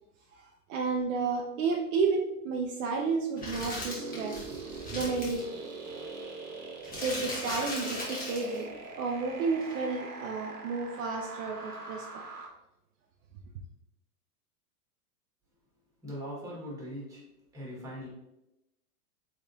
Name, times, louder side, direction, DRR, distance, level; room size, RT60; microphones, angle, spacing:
voice 1, 0.4-4.4 4.9-5.5 7.0-12.2, right 4 dB, 55° right, 1 dB, 0.6 m, -31 dB
sound 1, 3.4-5.4 6.8-8.6 9.6-9.7, left 1 dB, 20° left, 1.2 m, -38 dB
sound 2, 3.8-12.5, right 4 dB, 70° right, 1.1 m, -43 dB
voice 2, 16.0-17.3 17.5-18.1, equal, 5° right, -5 dB, 1.5 m, -40 dB
3.9 x 3.5 x 2.7 m, 0.87 s
hypercardioid pair, 130°, 47 cm